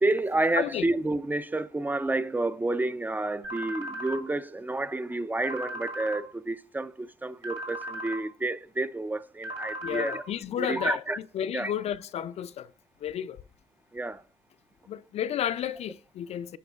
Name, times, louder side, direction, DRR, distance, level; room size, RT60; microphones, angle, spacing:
voice 1, 0.0-10.2 10.6-11.2 11.5-11.7 13.9-14.2, right 2 dB, 15° right, 0.4 m, -30 dB
sound 1, 3.4-4.2 5.4-6.2 7.4-8.2 9.4-10.2, right 1 dB, 55° right, 2.2 m, -36 dB
voice 2, 9.8-11.0 11.3-12.7 13.0-13.4 14.9-16.6, left 10 dB, 55° left, 0.4 m, -32 dB
9.2 x 5.4 x 2.3 m
supercardioid pair, 70°, 13 cm